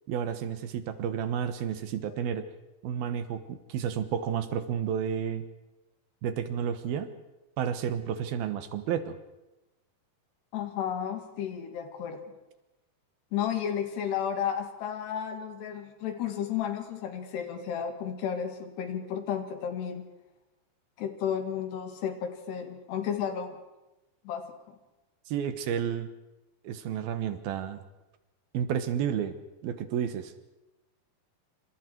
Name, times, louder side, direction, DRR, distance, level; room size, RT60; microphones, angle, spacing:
voice 1, 0.1-2.4 2.8-5.5 6.2-7.1 7.6-9.2 25.3-26.1 26.6-27.8 28.5-29.3 29.6-30.3, right 8 dB, 70° right, 11 dB, 2.9 m, -31 dB
voice 2, 10.5-12.2 13.3-20.0 21.0-23.6 24.3-24.8, left 8 dB, 80° left, 7 dB, 4.2 m, -33 dB
27.0 x 26.0 x 4.6 m, 1.0 s
omnidirectional pair, 4.7 m